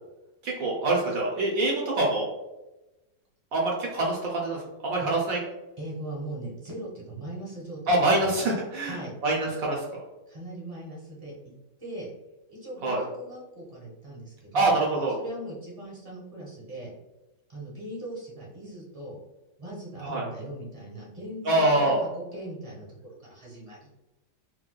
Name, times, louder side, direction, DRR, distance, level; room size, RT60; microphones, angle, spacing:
voice 1, 0.4-2.3 3.5-5.4 7.9-9.9 12.8-13.0 14.5-15.2 20.0-20.2 21.4-22.0, right 2 dB, 65° right, -2 dB, 0.9 m, -25 dB
voice 2, 5.8-8.3 8.9-9.1 10.3-11.5 11.8-12.1 12.5-14.7 15.2-16.9 17.5-19.2 19.6-21.9 22.3-23.9, right 1 dB, 30° right, -4 dB, 0.6 m, -39 dB
4.4 x 2.1 x 2.2 m, 1.0 s
omnidirectional pair, 1.9 m